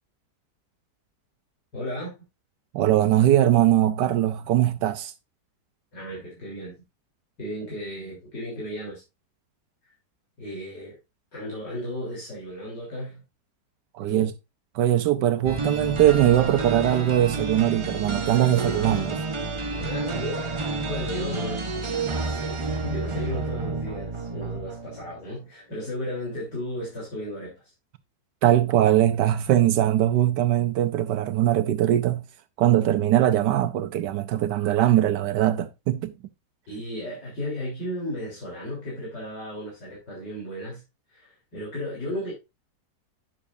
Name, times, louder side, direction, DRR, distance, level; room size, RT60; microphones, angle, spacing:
voice 1, 1.7-2.1 5.9-6.7 7.4-9.0 9.8-9.9 10.4-11.0 11.3-13.2 14.0-14.3 19.8-20.5 20.8-21.7 22.1-27.7 36.7-40.8 41.1-42.3, left 1 dB, 80° left, 4.3 m, -34 dB
voice 2, 2.7-5.1 13.9-14.3 14.7-19.2 28.4-32.2 32.6-36.1, right 12 dB, 80° right, 1.3 m, -21 dB
sound 1, 15.4-25.3, right 3 dB, 40° right, 0.4 m, -30 dB
10.0 x 7.0 x 2.6 m
omnidirectional pair, 1.8 m